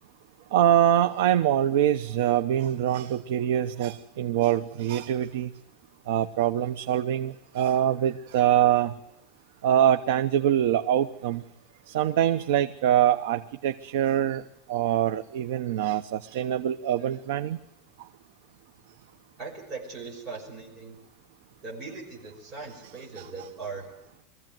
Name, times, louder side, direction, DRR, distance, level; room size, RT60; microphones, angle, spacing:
voice 1, 0.5-5.5 6.1-8.9 9.6-11.4 11.9-14.4 14.7-17.6 23.2-23.5, right 10 dB, 75° right, 0.9 m, -24 dB
voice 2, 19.4-21.0 21.6-23.8, right 4 dB, 30° right, 5.9 m, -39 dB
22.5 x 15.0 x 9.1 m
supercardioid pair, 180°, 0 cm